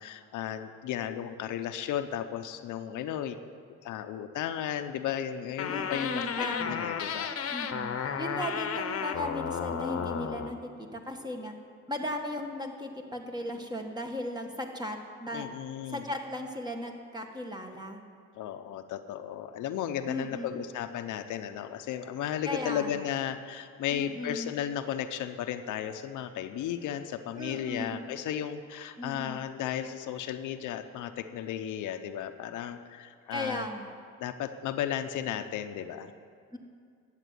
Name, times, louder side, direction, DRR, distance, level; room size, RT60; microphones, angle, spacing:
voice 1, 0.0-3.4 3.8-6.2 6.7-7.3 15.3-16.1 18.4-33.7 34.2-36.1, left 10 dB, 85° left, 8 dB, 0.8 m, -34 dB
sound 1, 5.6-10.5, left 7 dB, 50° left, 1.0 m, -33 dB
voice 2, 5.7-6.8 7.5-7.9 8.2-11.5 11.9-15.5 15.9-18.0 20.1-20.5 22.5-23.1 23.9-24.5 27.4-28.0 29.0-29.4 33.3-33.9 36.5-36.6, left 1 dB, 15° right, 3 dB, 1.7 m, -36 dB
12.0 x 7.6 x 9.4 m, 2.2 s
cardioid pair, 90°, 30 cm